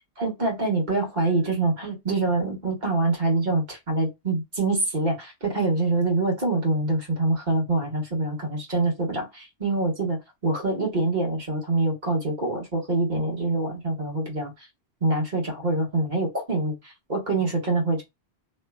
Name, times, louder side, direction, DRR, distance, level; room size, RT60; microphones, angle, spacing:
voice 1, 0.2-14.7 15.0-18.0, right 2 dB, 45° right, 1.6 m, -25 dB
3.2 x 2.9 x 2.3 m
omnidirectional pair, 1.1 m